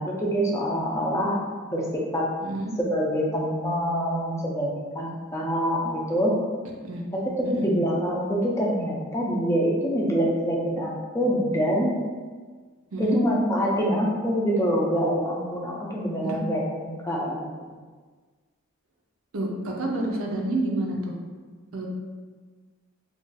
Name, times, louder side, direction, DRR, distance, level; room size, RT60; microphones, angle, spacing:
voice 1, 0.0-1.4 1.7-2.2 2.8-6.4 7.1-11.9 13.0-17.4, equal, 15° left, -4 dB, 0.4 m, -25 dB
voice 2, 19.3-21.2 21.7-21.9, right 1 dB, 85° right, 0 dB, 0.5 m, -28 dB
2.5 x 2.4 x 3.8 m, 1.5 s
head